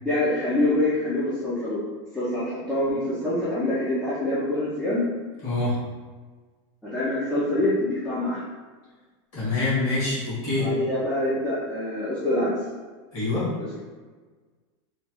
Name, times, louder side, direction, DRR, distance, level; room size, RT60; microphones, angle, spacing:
voice 1, 0.0-1.8 2.1-5.1 6.9-8.4 10.6-12.5, left 1 dB, 5° left, -11 dB, 0.4 m, -25 dB
voice 2, 5.4-5.8 9.3-10.7 13.1-13.5, left 2 dB, 35° left, -8 dB, 1.4 m, -25 dB
3.1 x 2.2 x 2.9 m, 1.4 s
supercardioid pair, 175°, 16 cm